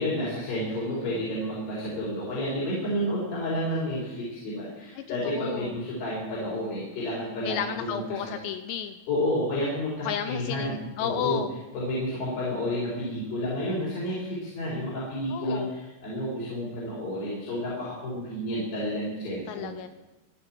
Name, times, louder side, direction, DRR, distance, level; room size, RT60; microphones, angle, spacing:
voice 1, 0.0-8.4 9.1-11.4 11.7-19.7, left 1 dB, 55° left, -8 dB, 6.7 m, -30 dB
voice 2, 0.6-1.1 5.0-5.8 7.4-9.0 10.0-11.5 15.3-15.8 19.5-19.9, left 9 dB, 85° left, 9 dB, 2.5 m, -33 dB
26.0 x 10.5 x 4.5 m, 1.1 s
omnidirectional pair, 5.8 m